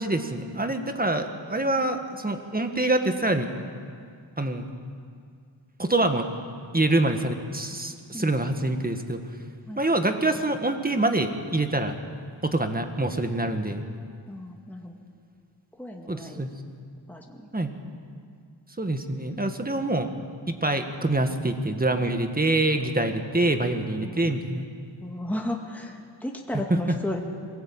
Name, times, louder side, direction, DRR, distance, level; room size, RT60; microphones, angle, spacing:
voice 1, 0.0-3.5 4.4-4.7 5.8-6.3 6.7-9.2 9.8-11.9 12.4-13.8 16.1-16.5 17.5-17.7 18.8-20.1 20.5-24.6, right 2 dB, 20° right, 6 dB, 1.8 m, -25 dB
voice 2, 14.3-15.0 15.7-16.5 17.1-17.7 24.0-24.2 25.0-27.2, left 1 dB, 5° left, 1 dB, 2.1 m, -34 dB
23.0 x 18.0 x 8.9 m, 2.2 s
wide cardioid pair, 95°, 47 cm